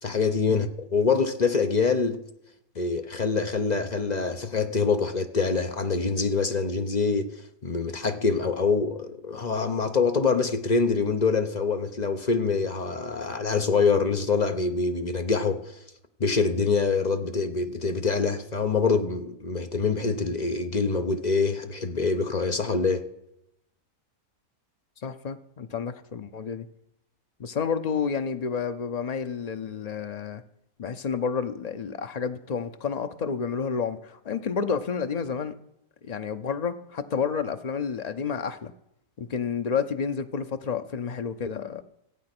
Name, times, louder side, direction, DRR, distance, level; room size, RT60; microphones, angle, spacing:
voice 1, 0.0-2.2 2.7-15.8 16.2-23.0, left 4 dB, 35° left, 0.7 m, -25 dB
voice 2, 25.0-26.7 27.4-30.4 30.8-35.5 36.0-38.7 39.2-41.8, left 6 dB, 75° left, 0.3 m, -30 dB
16.0 x 8.6 x 6.0 m
omnidirectional pair, 1.6 m